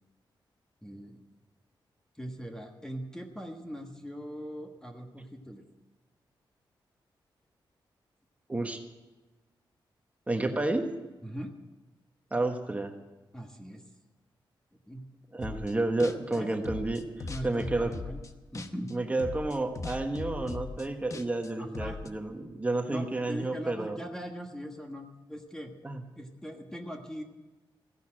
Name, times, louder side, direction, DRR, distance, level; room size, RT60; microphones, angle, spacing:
voice 1, 0.8-1.2 2.2-5.6 11.2-11.5 13.3-13.8 14.9-15.0 16.3-16.5 17.3-18.2 18.5-18.9 21.6-22.0 22.9-25.7 26.2-27.2, equal, 5° left, 3 dB, 1.4 m, -40 dB
voice 2, 8.5-8.8 10.3-10.9 12.3-12.9 15.3-17.9 18.9-24.0 25.8-26.0, right 2 dB, 15° right, 5 dB, 1.3 m, -30 dB
sound 1, 15.4-15.7 16.0-18.9 19.2-22.1, left 4 dB, 40° left, 1.0 m, -39 dB
15.5 x 10.5 x 7.5 m, 1.2 s
wide cardioid pair, 140°, 9 cm